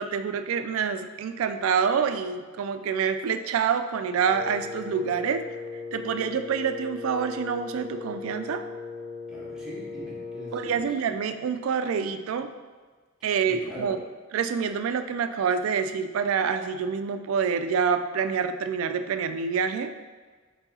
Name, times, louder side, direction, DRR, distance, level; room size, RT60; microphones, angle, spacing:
voice 1, 0.0-5.4 5.9-8.6 10.5-12.5 13.2-14.0 14.3-19.9, right 6 dB, 85° right, 9 dB, 0.3 m, -27 dB
Wind instrument woodwind instrument, 4.2-11.0, left 4 dB, 15° left, 1.2 m, -38 dB
voice 2, 9.3-10.9 13.4-13.9, right 1 dB, 5° right, -8 dB, 1.1 m, -42 dB
6.3 x 2.7 x 2.7 m, 1.4 s
head